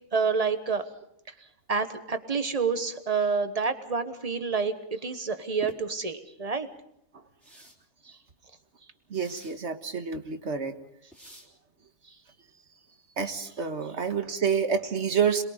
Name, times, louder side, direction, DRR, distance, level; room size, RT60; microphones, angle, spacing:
voice 1, 0.1-0.9 1.7-6.7, right 5 dB, 35° right, 9 dB, 1.3 m, -28 dB
sound 1, 5.6-5.8 7.4-7.8 9.1-9.6 11.1-11.5, left 1 dB, ahead, 3.0 m, -46 dB
voice 2, 9.1-10.8 13.2-15.4, right 6 dB, 75° right, 7 dB, 1.7 m, -28 dB
27.0 x 21.5 x 5.0 m, 0.75 s
omnidirectional pair, 1.2 m